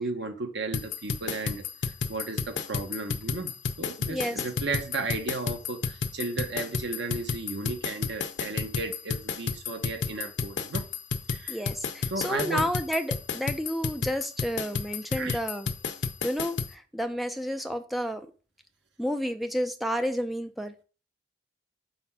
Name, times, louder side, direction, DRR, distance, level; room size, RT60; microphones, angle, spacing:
voice 1, 0.0-10.9 11.3-11.6 12.1-12.7 15.1-15.4, right 3 dB, 75° right, 1.0 m, -34 dB
sound 1, 0.7-16.7, left 5 dB, 80° left, 0.6 m, -31 dB
voice 2, 4.1-4.4 11.5-15.7 16.2-18.3 19.0-20.7, equal, ahead, 0.5 m, -31 dB
4.4 x 4.2 x 5.7 m
head